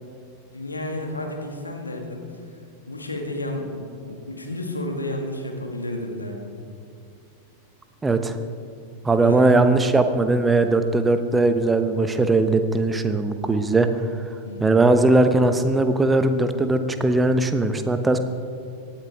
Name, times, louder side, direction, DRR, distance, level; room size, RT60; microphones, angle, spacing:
voice 1, 0.5-2.6 2.9-6.5 9.2-9.5 14.4-14.8, left 1 dB, 80° left, 2 dB, 2.0 m, -32 dB
voice 2, 8.0-8.4 9.0-13.9 14.6-18.2, right 2 dB, 10° right, 9 dB, 0.9 m, -19 dB
18.5 x 13.0 x 3.6 m, 2.3 s
figure-of-eight pair, 90°, 0 cm